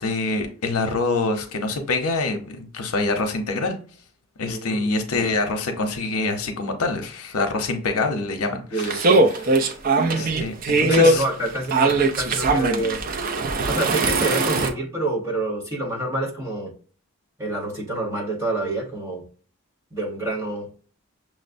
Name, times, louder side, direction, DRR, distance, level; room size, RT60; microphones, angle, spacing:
voice 1, 0.0-3.8 4.4-9.1 10.1-11.2, left 3 dB, 80° left, 0.7 m, -25 dB
voice 2, 4.4-5.3 8.5-9.3 10.3-10.5 10.8-13.0 13.7-16.7 17.4-19.2 19.9-20.7, right 2 dB, 15° right, 1.0 m, -27 dB
sound 1, 8.8-14.7, right 2 dB, 40° right, 0.4 m, -20 dB
6.1 x 2.0 x 2.5 m
head